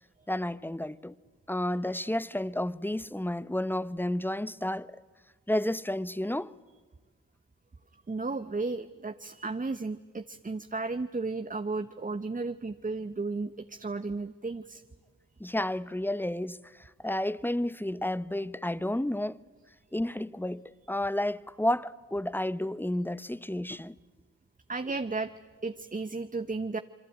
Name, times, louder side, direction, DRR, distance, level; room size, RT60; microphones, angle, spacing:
voice 1, 0.3-1.1 1.5-5.0 5.5-6.5 15.4-19.4 19.9-24.0, left 1 dB, 5° left, 0.8 m, -31 dB
voice 2, 8.1-14.8 24.7-25.3 25.6-26.8, right 3 dB, 25° right, 1.0 m, -34 dB
26.5 x 23.0 x 9.2 m
supercardioid pair, 45°, 34 cm